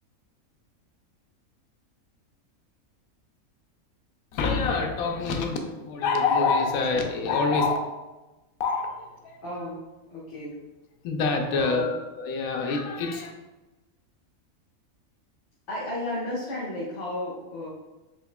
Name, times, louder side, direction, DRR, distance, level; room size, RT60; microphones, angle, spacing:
voice 1, 4.3-7.8 8.6-9.4 11.0-13.3, left 4 dB, 80° left, 3 dB, 1.0 m, -26 dB
voice 2, 9.4-10.6 11.5-11.9 15.7-17.7, left 1 dB, 60° left, -8 dB, 1.3 m, -33 dB
4.7 x 3.5 x 2.2 m, 1.1 s
omnidirectional pair, 1.5 m